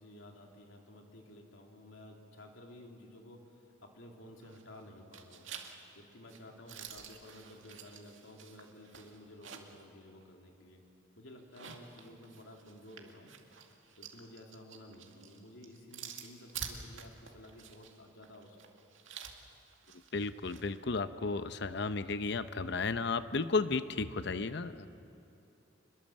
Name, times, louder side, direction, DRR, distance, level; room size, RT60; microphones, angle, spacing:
voice 1, 0.0-5.5 5.9-10.8 11.2-13.3 14.0-18.6, left 1 dB, 75° left, 1 dB, 3.2 m, -53 dB
sound 1, 4.4-4.8 5.1-9.8 10.2-10.3 11.4-20.7, right 7 dB, 70° right, 2.3 m, -49 dB
voice 2, 20.1-24.9, left 4 dB, 55° left, 12 dB, 0.8 m, -33 dB
27.5 x 22.0 x 7.5 m, 2.9 s
head